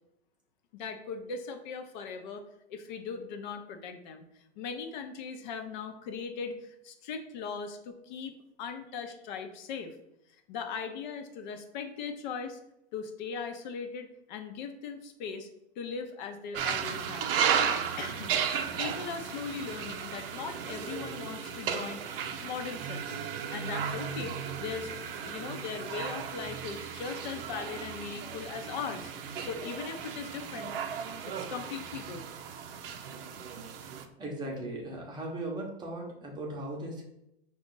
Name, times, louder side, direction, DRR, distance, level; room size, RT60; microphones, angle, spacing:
voice 1, 0.7-2.4 2.7-4.2 4.6-9.9 10.5-12.6 12.9-15.5 15.8-17.3 18.0-18.3 18.8-22.0 22.4-23.2 23.5-24.9 25.2-29.1 29.4-30.7 31.3-32.3, left 5 dB, 45° left, 6 dB, 0.7 m, -39 dB
sound 1, 16.5-34.0, right 7 dB, 60° right, 0.6 m, -35 dB
voice 2, 34.2-37.0, right 1 dB, 15° right, -1 dB, 0.9 m, -38 dB
5.2 x 2.5 x 3.8 m, 0.81 s
hypercardioid pair, 135°, 33 cm